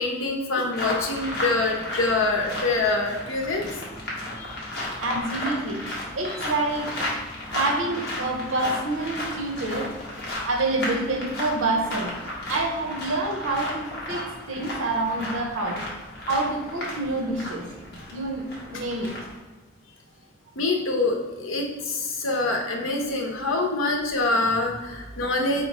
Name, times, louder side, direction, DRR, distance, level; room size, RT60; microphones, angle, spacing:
voice 1, 0.0-3.7 4.4-4.6 20.6-25.7, left 2 dB, 90° left, 1 dB, 0.8 m, -25 dB
sound 1, 0.7-19.4, left 1 dB, 55° left, 1.1 m, -34 dB
voice 2, 5.0-5.8 6.1-9.9 10.4-12.1 12.5-15.8 16.3-17.7 18.1-19.1, right 2 dB, 85° right, 2 dB, 0.8 m, -27 dB
4.3 x 3.7 x 2.9 m, 1.2 s
head